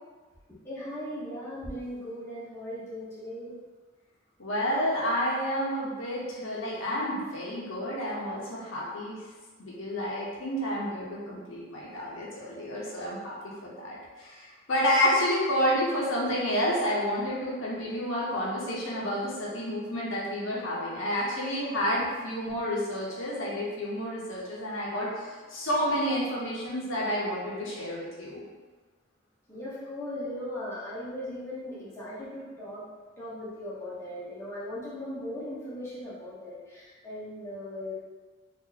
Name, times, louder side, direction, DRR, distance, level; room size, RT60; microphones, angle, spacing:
voice 1, 0.5-3.6 29.5-32.8 33.2-37.9, left 1 dB, 15° left, -9 dB, 0.9 m, -38 dB
voice 2, 4.4-9.2 9.6-28.4, equal, 75° left, -5 dB, 0.9 m, -30 dB
2.9 x 2.5 x 3.8 m, 1.4 s
head